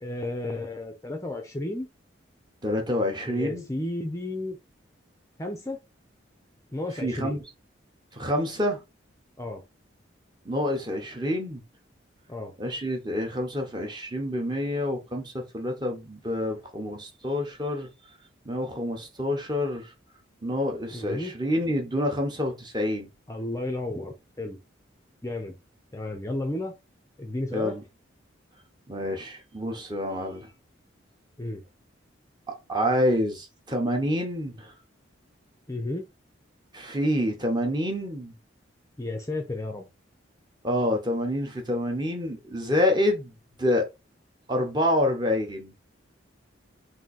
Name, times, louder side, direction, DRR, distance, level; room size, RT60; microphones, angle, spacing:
voice 1, 0.0-1.9 3.3-4.6 5.4-5.8 6.7-7.4 9.4-9.6 12.3-12.5 20.9-21.3 23.3-24.6 25.2-25.5 25.9-26.7 27.2-27.8 31.4-31.6 35.7-36.1 39.0-39.9, left 2 dB, 15° left, 0.5 m, -33 dB
voice 2, 2.6-3.7 6.9-7.4 8.1-8.8 10.4-11.6 12.6-17.9 18.4-19.9 20.4-23.1 27.5-27.8 28.9-30.5 32.5-34.7 36.7-38.3 40.6-43.3 43.6-43.9 44.5-45.7, left 1 dB, 20° right, 0.9 m, -27 dB
3.7 x 2.7 x 4.1 m
head